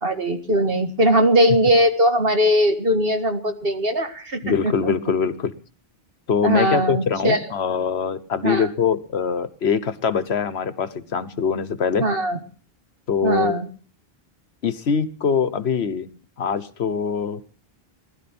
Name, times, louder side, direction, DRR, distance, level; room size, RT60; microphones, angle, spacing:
voice 1, 0.0-4.9 6.4-7.4 8.4-8.7 12.0-12.4 13.2-13.7, equal, 65° right, 6 dB, 2.0 m, -20 dB
voice 2, 4.4-5.5 6.3-12.0 13.1-13.6 14.6-16.1 16.4-17.4, left 6 dB, 85° left, 12 dB, 1.4 m, -23 dB
19.5 x 12.0 x 6.0 m, 0.41 s
omnidirectional pair, 1.0 m